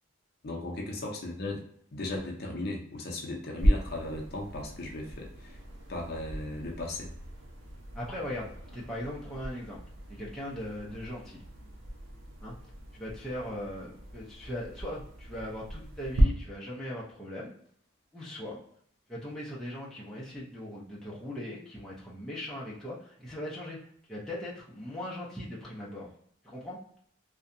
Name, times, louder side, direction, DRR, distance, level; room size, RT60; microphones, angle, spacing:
voice 1, 0.4-1.6 1.9-5.6 5.9-7.1, left 2 dB, 50° left, 0 dB, 0.5 m, -36 dB
sound 1, 3.6-16.2, equal, 70° right, 0.6 m, -35 dB
voice 2, 7.9-9.8 10.1-11.4 12.4-12.5 12.9-17.5 18.1-18.6 19.1-23.8 24.1-26.1 26.4-26.8, left 1 dB, ahead, -7 dB, 0.5 m, -39 dB
2.7 x 2.1 x 2.5 m, 0.63 s
head